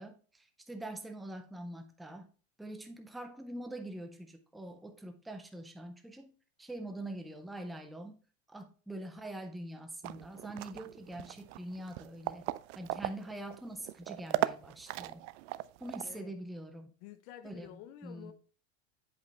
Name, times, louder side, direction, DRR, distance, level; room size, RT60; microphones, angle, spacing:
voice 1, 0.0-2.3 2.6-6.3 6.6-8.2 8.5-12.5 12.7-15.3 15.8-16.9 17.4-18.3, right 1 dB, ahead, 0.4 m, -44 dB
sound 1, 10.0-16.2, right 17 dB, 70° right, 0.5 m, -38 dB
voice 2, 16.0-16.3 17.0-18.3, left 11 dB, 60° left, 0.8 m, -50 dB
8.0 x 5.3 x 3.3 m
supercardioid pair, 150°, 37 cm